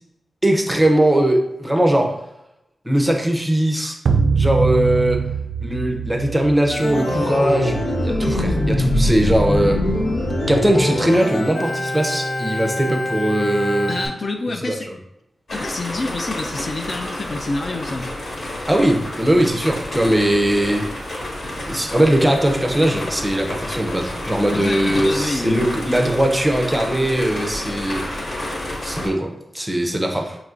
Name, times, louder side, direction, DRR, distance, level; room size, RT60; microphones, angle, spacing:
voice 1, 0.4-2.2 2.8-4.0 4.3-5.3 5.6-9.8 10.5-13.9 14.6-14.8 18.7-20.9 21.6-30.4, right 1 dB, 10° right, 2 dB, 0.5 m, -20 dB
sound 1, 4.1-8.5, right 5 dB, 80° right, 0.3 m, -23 dB
Organ, 6.7-14.1, left 1 dB, 75° left, 1.1 m, -22 dB
voice 2, 13.9-14.9 15.5-18.1 24.5-25.7 30.1-30.2, left 2 dB, 40° left, 4 dB, 0.3 m, -27 dB
sound 2, 15.5-29.1, left 1 dB, 55° left, 1.5 m, -30 dB
5.8 x 3.0 x 2.4 m, 0.85 s
wide cardioid pair, 145°, 0 cm